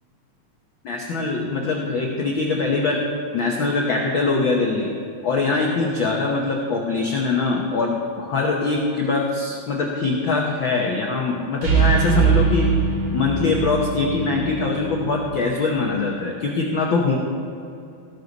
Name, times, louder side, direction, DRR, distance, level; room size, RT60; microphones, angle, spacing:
voice 1, 0.8-3.0 3.3-4.9 5.2-12.7 13.1-17.2, left 3 dB, 70° left, -1 dB, 1.2 m, -22 dB
sound 1, 11.6-15.4, right 5 dB, 50° right, 2.7 m, -22 dB
15.0 x 13.5 x 4.0 m, 2.5 s
omnidirectional pair, 3.8 m